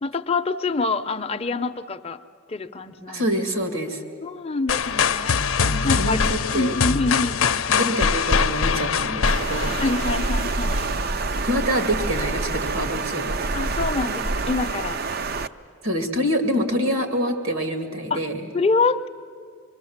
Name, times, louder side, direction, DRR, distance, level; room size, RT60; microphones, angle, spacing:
voice 1, 0.0-2.2 2.5-3.3 4.2-6.3 6.5-7.9 9.8-10.9 13.5-15.0 18.1-18.2 18.5-19.1, left 3 dB, 30° left, 8 dB, 0.6 m, -26 dB
voice 2, 3.1-4.0 5.7-6.8 7.8-9.8 11.5-13.4 15.8-18.4, equal, 80° right, 5 dB, 2.4 m, -26 dB
sound 1, 4.7-10.6, left 6 dB, 80° left, 0.6 m, -23 dB
Water, 9.3-15.5, right 3 dB, 45° right, 0.5 m, -26 dB
25.0 x 22.5 x 7.3 m, 2.2 s
head